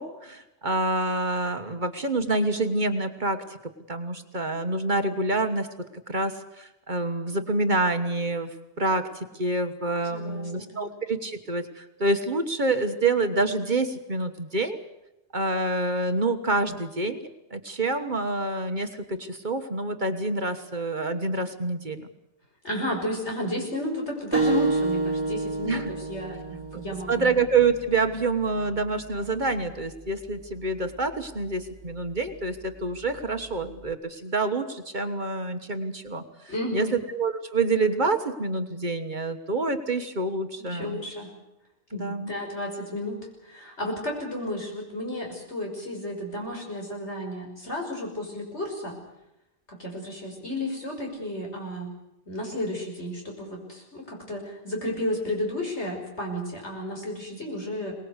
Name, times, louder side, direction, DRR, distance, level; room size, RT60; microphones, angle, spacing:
voice 1, 0.0-5.7 5.9-14.8 15.3-22.1 25.6-25.9 27.1-41.0 41.9-42.3, right 3 dB, 45° right, 8 dB, 1.5 m, -27 dB
voice 2, 10.1-10.9 22.6-27.3 36.5-37.0 40.6-41.3 41.9-49.0 49.7-51.9 52.3-58.0, left 1 dB, 75° left, 1 dB, 6.1 m, -32 dB
sound 1, 24.3-29.5, right 3 dB, 10° right, 5.1 m, -30 dB
23.5 x 19.5 x 8.1 m, 0.91 s
omnidirectional pair, 1.2 m